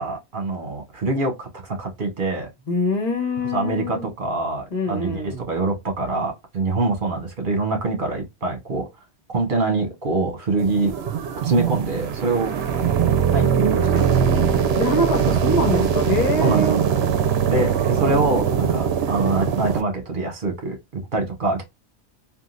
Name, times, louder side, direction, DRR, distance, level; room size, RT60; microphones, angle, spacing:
voice 1, 0.0-2.5 3.5-8.9 9.3-10.9 11.4-12.5 13.3-14.3 15.8-15.9 16.4-16.8 17.5-21.6, right 3 dB, 50° right, 1.3 m, -25 dB
voice 2, 2.7-4.1 4.7-5.5 14.7-16.8, left 2 dB, 40° left, 1.3 m, -24 dB
sound 1, 10.6-19.8, right 7 dB, 70° right, 0.9 m, -21 dB
3.6 x 2.6 x 2.4 m
omnidirectional pair, 1.1 m